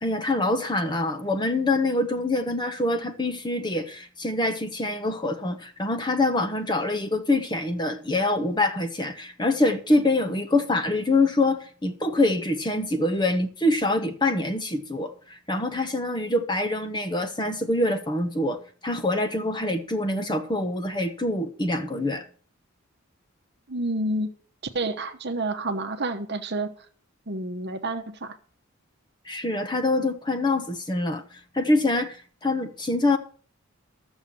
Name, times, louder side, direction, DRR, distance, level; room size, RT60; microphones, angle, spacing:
voice 1, 0.0-22.2 29.3-33.2, left 2 dB, 20° left, 1.1 m, -25 dB
voice 2, 23.7-24.3 24.7-26.9 27.3-28.4, right 2 dB, 50° right, 1.0 m, -29 dB
13.0 x 7.2 x 6.3 m
head